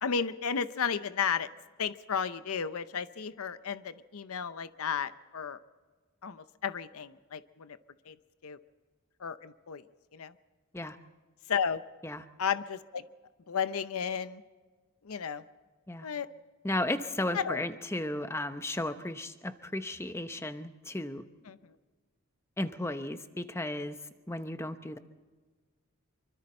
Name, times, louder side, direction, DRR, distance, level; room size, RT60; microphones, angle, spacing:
voice 1, 0.0-1.5 1.8-5.6 6.2-7.8 8.1-8.2 8.4-8.6 9.2-9.8 10.1-10.3 11.5-11.8 12.4-13.0 13.5-14.4 15.0-15.4 16.0-16.3 17.3-17.6 21.5-21.7, left 6 dB, 80° left, 13 dB, 0.7 m, -33 dB
voice 2, 16.6-21.2 22.6-24.0 24.3-25.0, left 1 dB, 10° left, 9 dB, 0.8 m, -34 dB
25.0 x 24.0 x 4.4 m, 1.4 s
head